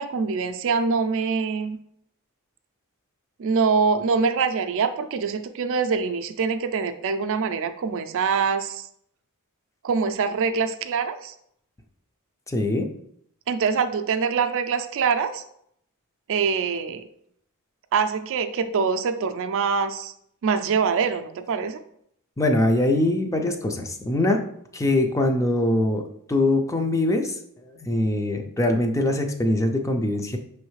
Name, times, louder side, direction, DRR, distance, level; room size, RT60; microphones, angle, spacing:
voice 1, 0.0-1.8 3.4-8.9 9.8-11.3 13.5-15.4 16.3-17.0 17.9-20.1 20.4-21.8, right 5 dB, 60° right, 8 dB, 0.4 m, -24 dB
voice 2, 12.5-12.9 22.4-24.4 24.7-26.0 26.3-27.4 27.8-30.4, left 1 dB, 15° left, 4 dB, 0.4 m, -22 dB
5.3 x 3.2 x 3.1 m, 0.70 s
head